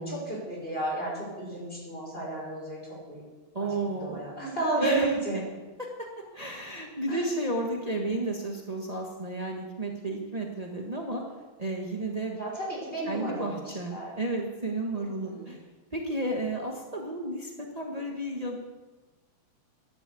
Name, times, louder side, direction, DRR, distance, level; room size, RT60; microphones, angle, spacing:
voice 1, 0.1-3.2 3.6-5.4 7.1-7.3 12.4-14.2 14.9-15.5, right 2 dB, 20° left, -3 dB, 5.8 m, -32 dB
voice 2, 3.5-4.3 4.8-5.1 5.8-5.9 6.3-11.2 11.6-12.4 13.1-15.6 15.9-18.6, right 1 dB, 45° right, 0 dB, 0.5 m, -32 dB
11.5 x 11.5 x 8.4 m, 1.2 s
omnidirectional pair, 3.3 m